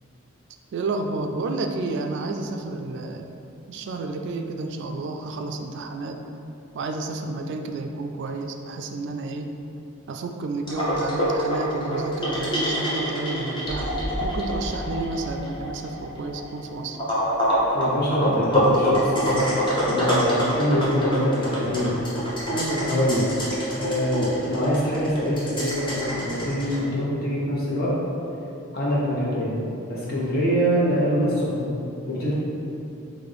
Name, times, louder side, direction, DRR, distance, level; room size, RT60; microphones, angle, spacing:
voice 1, 0.7-3.3 3.7-6.2 6.7-9.5 10.1-17.0 22.5-22.9, right 3 dB, 55° right, 4 dB, 0.3 m, -31 dB
sound 1, 10.7-26.8, equal, 20° left, 0.8 m, -26 dB
voice 2, 17.7-22.0 22.7-23.2 23.8-27.9 28.7-31.8 32.0-32.3, equal, 45° left, -6 dB, 1.1 m, -24 dB
6.1 x 2.6 x 3.4 m, 2.7 s
head